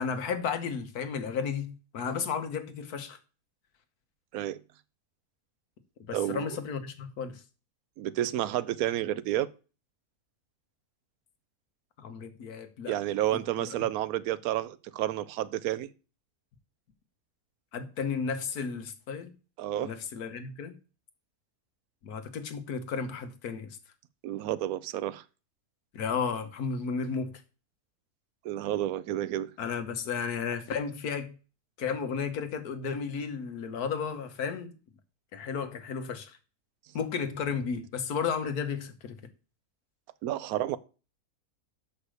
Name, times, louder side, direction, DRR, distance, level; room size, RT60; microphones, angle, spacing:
voice 1, 0.0-3.2 6.1-7.4 12.0-12.9 13.6-13.7 17.7-19.3 19.8-20.7 22.0-23.8 25.9-27.3 29.6-31.3 31.8-34.8 35.3-36.4 36.9-39.2, left 6 dB, 85° left, 1.5 m, -33 dB
voice 2, 6.1-6.5 8.0-9.5 12.9-15.9 19.6-19.9 24.2-25.2 28.4-29.5 40.2-40.8, right 13 dB, 75° right, 1.0 m, -30 dB
6.5 x 5.2 x 6.2 m
omnidirectional pair, 1.6 m